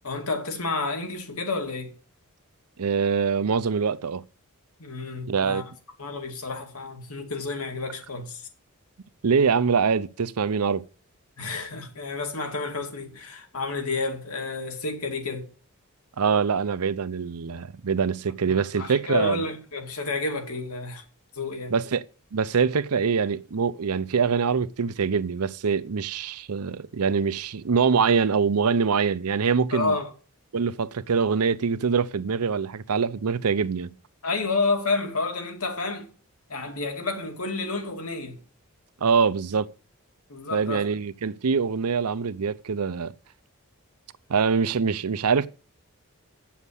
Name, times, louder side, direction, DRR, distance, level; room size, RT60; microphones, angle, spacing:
voice 1, 0.0-1.9 4.8-5.6 6.0-8.5 11.4-15.5 18.5-21.0 21.3-21.7 29.7-30.1 34.2-36.1 36.5-38.4 40.3-40.9, left 3 dB, 80° left, 2.5 m, -30 dB
voice 2, 2.8-4.2 5.3-5.7 9.2-10.8 16.2-19.4 21.7-22.0 22.3-30.0 30.5-33.9 39.0-39.7 40.5-43.1 44.3-45.5, right 5 dB, 90° right, 0.6 m, -24 dB
8.4 x 7.3 x 8.1 m
head